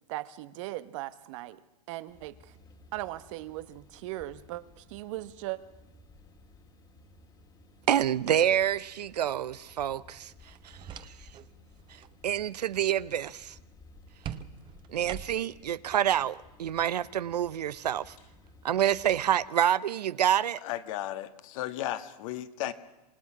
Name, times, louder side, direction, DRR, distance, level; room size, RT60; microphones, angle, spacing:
voice 1, 0.1-1.6 1.9-2.6 2.9-5.6, right 16 dB, 50° right, 1.1 m, -38 dB
sound 1, 2.1-19.5, left 2 dB, 20° left, 2.1 m, -56 dB
voice 2, 7.9-10.3 10.6-10.7 12.2-13.6 14.9-18.1 18.6-20.6, right 10 dB, 90° right, 0.8 m, -27 dB
sound 2, 10.5-11.5 11.8-12.2 14.2-15.6, right 9 dB, 25° right, 1.0 m, -42 dB
voice 3, 20.6-22.7, left 13 dB, 55° left, 1.7 m, -35 dB
27.5 x 18.0 x 6.0 m
hypercardioid pair, 135°, 20 cm